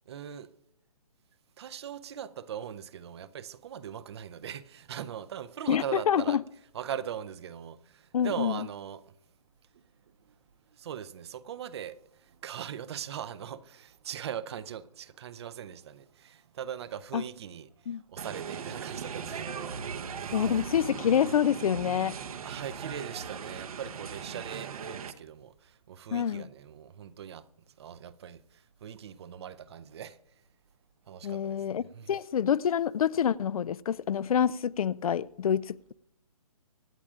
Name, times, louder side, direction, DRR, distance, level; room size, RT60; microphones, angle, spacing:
voice 1, 0.1-0.5 1.6-6.4 6.7-9.0 9.7-9.8 10.7-20.5 22.4-27.4 27.8-30.2 31.1-32.2, right 9 dB, 45° right, 0.6 m, -40 dB
voice 2, 5.7-6.4 8.1-8.7 17.1-17.2 17.9-18.0 20.3-22.1 26.1-26.5 31.2-35.9, left 8 dB, 70° left, 0.4 m, -27 dB
sound 1, 18.2-25.1, right 6 dB, 70° right, 1.0 m, -38 dB
25.0 x 9.9 x 2.5 m
hypercardioid pair, 150°, 19 cm